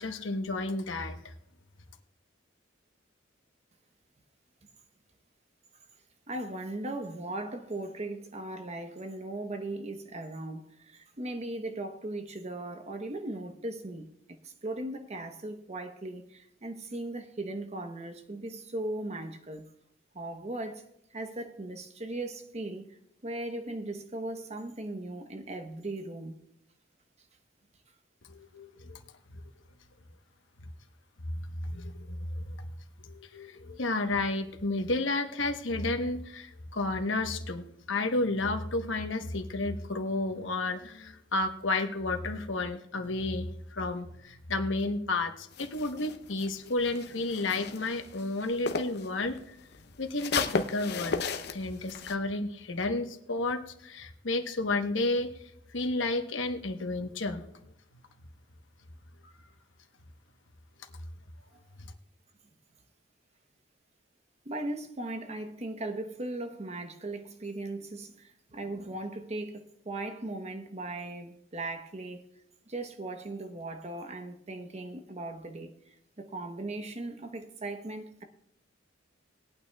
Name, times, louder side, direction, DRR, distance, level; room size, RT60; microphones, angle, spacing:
voice 1, 0.0-1.3 28.3-29.0 29.3-29.4 30.6-30.7 31.6-32.7 33.0-49.4 50.0-51.3 51.5-57.5, left 2 dB, 75° left, 1.1 m, -32 dB
voice 2, 6.3-19.7 20.1-20.8 21.1-22.9 23.2-26.4 64.4-72.3 72.7-78.2, right 2 dB, 35° right, 1.0 m, -38 dB
sound 1, 45.5-49.1 49.4-52.1, left 4 dB, 60° left, 0.7 m, -35 dB
20.0 x 9.0 x 2.3 m
head